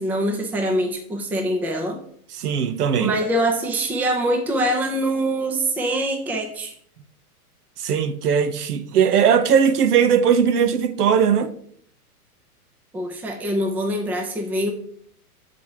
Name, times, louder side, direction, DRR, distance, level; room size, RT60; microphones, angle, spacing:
voice 1, 0.0-2.0 3.0-6.7 12.9-14.7, right 1 dB, 5° right, 0.5 m, -24 dB
voice 2, 2.3-3.2 7.8-11.5, right 7 dB, 80° right, 0.8 m, -19 dB
5.9 x 4.1 x 4.8 m
hypercardioid pair, 120°, 46 cm